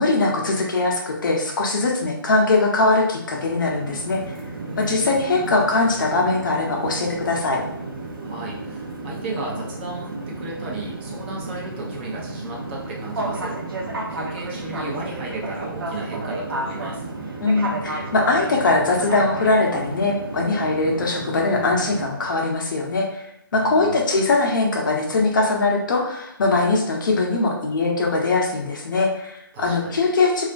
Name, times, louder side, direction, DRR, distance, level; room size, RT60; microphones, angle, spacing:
voice 1, 0.0-4.4 4.8-7.6 17.4-23.2 23.5-30.4, left 3 dB, 60° left, 0 dB, 0.7 m, -21 dB
sound 1, 3.2-22.1, right 2 dB, 75° right, 0.6 m, -32 dB
voice 2, 4.7-5.2 8.2-13.5 14.1-17.0 23.5-24.0 29.5-30.0, right 2 dB, 25° right, -3 dB, 0.5 m, -34 dB
2.4 x 2.1 x 2.5 m, 0.79 s
figure-of-eight pair, 145°, 12 cm